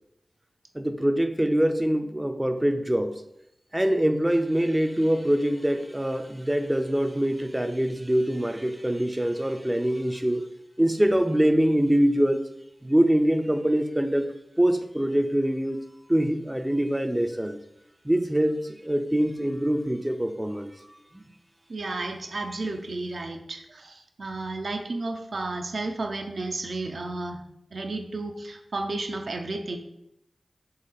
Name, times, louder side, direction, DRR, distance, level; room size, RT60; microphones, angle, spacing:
voice 1, 0.7-3.2 3.7-10.5 10.8-12.4 12.8-14.3 14.6-15.8 16.1-17.6 18.0-20.9 21.1-21.3, right 1 dB, 15° right, 7 dB, 0.4 m, -24 dB
voice 2, 21.7-27.4 27.7-29.8, right 2 dB, 70° right, 4 dB, 0.4 m, -32 dB
3.9 x 2.8 x 4.1 m, 0.80 s
cardioid pair, 45°, 0 cm